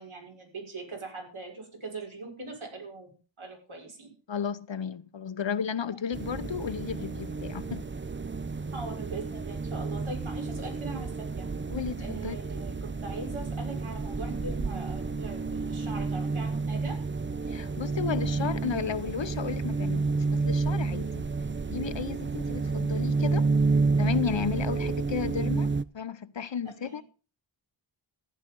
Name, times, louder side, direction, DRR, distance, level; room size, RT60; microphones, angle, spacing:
voice 1, 0.0-4.1 8.7-11.5 12.0-17.0 26.6-27.0, right 3 dB, 80° right, 6.2 m, -41 dB
voice 2, 4.3-7.9 11.7-12.4 17.5-21.2 21.7-23.5 24.0-27.0, left 7 dB, 65° left, 0.9 m, -33 dB
sound 1, 6.1-25.8, right 4 dB, 25° right, 0.6 m, -30 dB
14.5 x 10.5 x 5.4 m
wide cardioid pair, 80°, 48 cm